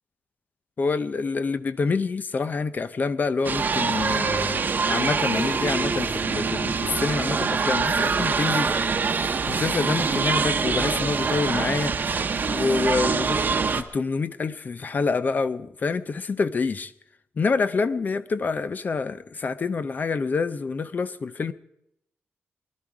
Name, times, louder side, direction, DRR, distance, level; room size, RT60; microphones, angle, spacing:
voice 1, 0.8-8.7 9.1-12.0 12.5-13.4 13.7-16.9 17.4-21.5, left 4 dB, 45° left, 14 dB, 0.5 m, -27 dB
sound 1, 3.4-13.8, right 5 dB, 45° right, 0.9 m, -24 dB
22.0 x 11.5 x 4.8 m, 0.79 s
wide cardioid pair, 125°, 4 cm